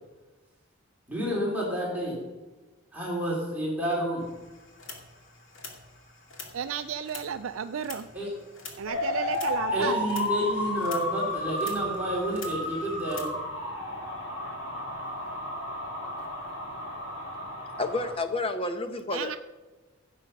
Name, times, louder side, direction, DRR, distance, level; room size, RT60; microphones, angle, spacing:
voice 1, 1.1-2.1 2.9-4.2 8.1-8.3 9.7-13.3, equal, 5° right, -5 dB, 3.4 m, -30 dB
sound 1, 4.2-13.3, left 4 dB, 60° left, 2.3 m, -47 dB
voice 2, 6.5-8.1 8.8-10.1 19.1-19.4, right 7 dB, 70° right, 9 dB, 0.4 m, -33 dB
sound 2, 8.9-18.1, left 1 dB, 80° left, 3.5 m, -32 dB
voice 3, 17.8-19.4, left 2 dB, 25° left, 8 dB, 0.9 m, -30 dB
15.5 x 7.5 x 5.3 m, 1.2 s
head